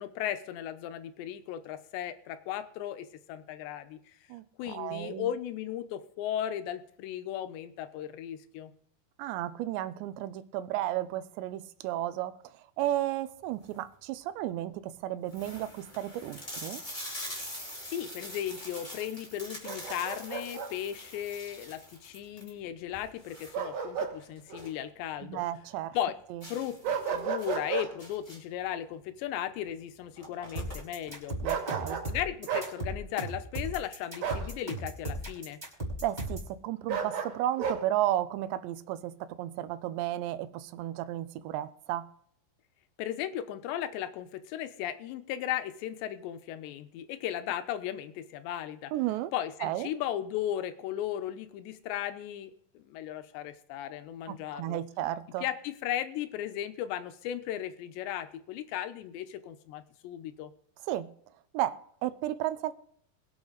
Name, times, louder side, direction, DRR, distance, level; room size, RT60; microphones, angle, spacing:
voice 1, 0.0-4.2 4.6-8.7 17.9-25.4 25.9-26.2 26.5-26.8 27.1-31.4 32.1-35.6 43.0-48.9 49.3-54.8 55.4-60.5, left 11 dB, 80° left, 3.1 m, -36 dB
voice 2, 4.3-5.3 9.2-16.8 25.2-26.0 26.3-26.4 31.4-32.0 36.0-42.1 48.9-49.3 49.6-49.9 54.3-55.4 60.8-61.1 61.5-62.7, right 13 dB, 85° right, 3.0 m, -33 dB
sound 1, 13.4-13.9 14.5-14.6 14.9-15.0 15.3-24.8 25.2-25.3 25.6-25.7 26.4-28.6 29.6-29.7 30.0-31.1, left 1 dB, 10° left, 2.9 m, -44 dB
Bark, 19.6-20.7 23.5-24.2 24.5-24.7 26.8-27.9 31.4-32.1 32.5-32.7 34.2-34.5 36.9-37.8, right 7 dB, 70° right, 4.5 m, -33 dB
sound 2, 30.6-36.5, right 1 dB, 10° right, 4.7 m, -36 dB
22.0 x 8.1 x 4.1 m
omnidirectional pair, 5.0 m